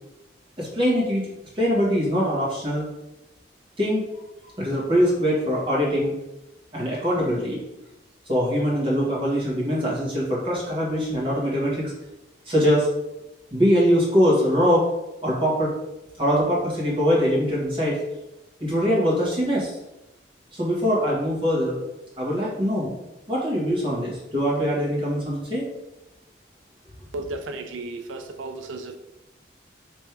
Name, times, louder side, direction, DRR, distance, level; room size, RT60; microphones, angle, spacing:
voice 1, 0.6-2.8 3.8-4.1 4.6-6.2 6.7-7.6 8.3-11.9 12.4-12.9 13.5-14.8 15.2-15.7 16.2-18.0 18.6-19.8 20.6-21.8 22.2-23.0 23.3-25.7, equal, 25° right, -6 dB, 1.6 m, -22 dB
voice 2, 27.1-29.0, right 2 dB, 90° right, 6 dB, 0.4 m, -34 dB
3.4 x 3.3 x 4.5 m, 0.95 s
head